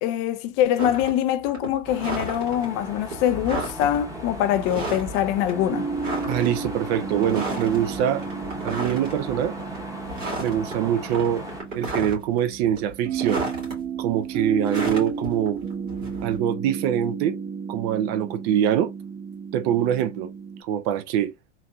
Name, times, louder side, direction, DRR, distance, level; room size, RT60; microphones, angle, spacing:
voice 1, 0.0-5.9, left 11 dB, 50° left, 0.5 m, -24 dB
sound 1, 0.8-1.2 1.5-2.7 3.1-3.2 3.4-4.0 4.6-5.2 5.5-5.6 6.0-6.6 7.2-7.8 8.2-9.2 9.6-9.8 10.1-10.7 11.0-12.4 12.7-13.7 14.7-16.4, right 2 dB, 85° right, 2.2 m, -32 dB
sound 2, 1.8-11.6, equal, 10° right, 0.9 m, -37 dB
sound 3, 5.5-20.6, right 5 dB, 40° right, 1.1 m, -33 dB
voice 2, 6.3-8.2 8.6-9.5 10.4-11.4 11.7-13.5 14.0-15.6 16.2-17.4 17.7-18.9 19.5-20.3 20.6-21.3, right 10 dB, 55° right, 0.7 m, -24 dB
3.9 x 2.7 x 2.3 m
hypercardioid pair, 85°, 37 cm